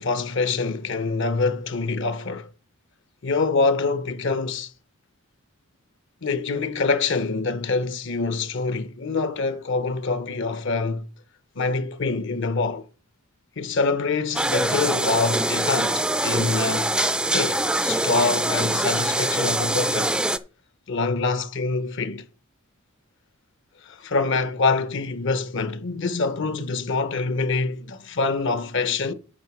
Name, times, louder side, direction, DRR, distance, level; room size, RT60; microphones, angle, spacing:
voice 1, 0.0-2.5 3.2-4.7 6.2-11.1 11.6-12.9 13.6-16.9 17.3-20.2 20.9-22.3 23.8-29.1, left 4 dB, 60° left, 0.8 m, -25 dB
sound 1, 14.3-20.4, right 1 dB, 5° right, 0.4 m, -24 dB
8.7 x 4.7 x 6.0 m
head